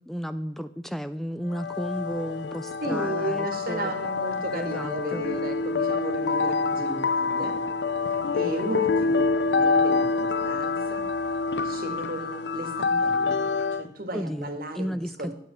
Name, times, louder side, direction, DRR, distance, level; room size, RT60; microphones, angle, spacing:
voice 1, 0.1-3.9 4.5-5.2 14.1-15.3, equal, ahead, 11 dB, 0.3 m, -33 dB
sound 1, 1.5-13.9, left 4 dB, 75° left, 0.5 m, -26 dB
voice 2, 2.8-7.6 8.3-11.1 11.6-13.4 13.7-15.3, right 1 dB, 55° right, 7 dB, 2.0 m, -34 dB
12.0 x 9.3 x 6.0 m, 0.80 s
head